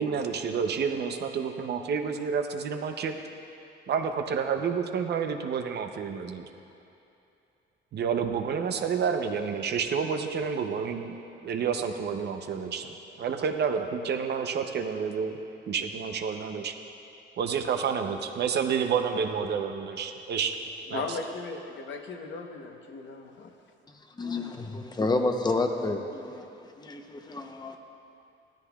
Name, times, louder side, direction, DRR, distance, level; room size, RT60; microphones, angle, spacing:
voice 1, 0.0-3.2 3.9-6.5 7.9-11.1 11.4-15.4 15.7-16.7 17.4-20.6 20.9-21.2, right 6 dB, 55° right, 6 dB, 0.7 m, -29 dB
voice 2, 20.9-23.5, left 4 dB, 65° left, 3 dB, 1.0 m, -37 dB
voice 3, 24.2-26.5 26.8-27.8, left 2 dB, 20° left, 4 dB, 0.8 m, -29 dB
16.5 x 13.0 x 2.4 m, 2.8 s
cardioid pair, 135°, 20 cm